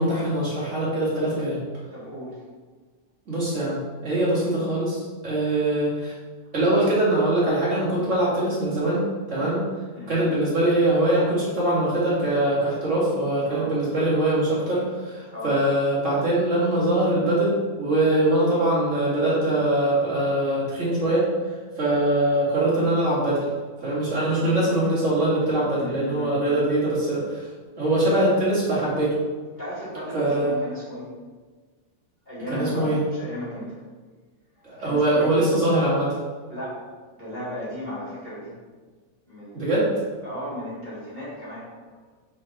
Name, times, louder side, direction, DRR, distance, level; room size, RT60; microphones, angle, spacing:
voice 1, 0.0-1.6 3.3-6.1 6.5-9.7 10.1-21.3 21.8-23.5 23.8-27.4 27.8-29.2 30.1-30.5 32.5-33.0 34.6-36.2 39.5-39.9, right 1 dB, 45° right, -7 dB, 2.6 m, -22 dB
voice 2, 1.9-2.4 9.9-10.1 13.5-13.7 15.3-15.5 25.8-26.4 29.5-31.1 32.3-33.8 34.6-35.3 36.5-36.8 37.1-38.5 39.3-42.0, equal, 25° left, -10 dB, 2.2 m, -35 dB
6.1 x 4.8 x 4.4 m, 1.4 s
omnidirectional pair, 1.9 m